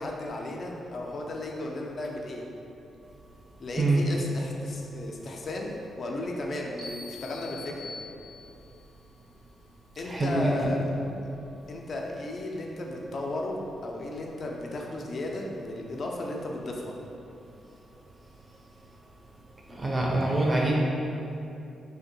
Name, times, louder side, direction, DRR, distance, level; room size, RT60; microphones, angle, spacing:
voice 1, 0.0-2.4 3.6-7.9 10.0-10.8 11.7-13.6 13.8-17.0, left 1 dB, 55° left, 0 dB, 0.4 m, -34 dB
sound 1, 6.8-8.6, left 3 dB, 85° right, 0.9 m, -43 dB
voice 2, 10.1-10.5 19.8-20.7, right 2 dB, 30° right, -3 dB, 0.4 m, -24 dB
2.6 x 2.1 x 2.6 m, 2.7 s
supercardioid pair, 50°, 0 cm